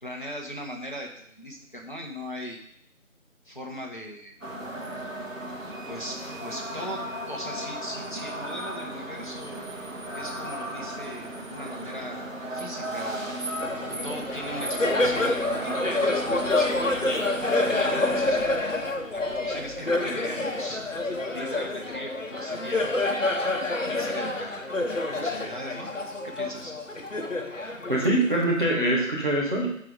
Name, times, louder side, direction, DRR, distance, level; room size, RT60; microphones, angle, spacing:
voice 1, 0.0-2.6 3.4-4.3 5.9-9.6 10.1-13.3 13.9-17.1 17.6-18.4 19.1-20.8 21.3-22.9 23.8-24.6 25.1-25.9 26.2-26.7, equal, 40° left, 0 dB, 1.1 m, -39 dB
sound 1, 4.4-18.2, right 1 dB, 75° right, 1.5 m, -35 dB
Laughter, 13.6-28.6, left 2 dB, 70° left, 1.0 m, -28 dB
voice 2, 27.9-29.7, right 1 dB, 40° right, -5 dB, 1.6 m, -23 dB
6.0 x 4.7 x 5.1 m, 0.69 s
figure-of-eight pair, 175°, 40 cm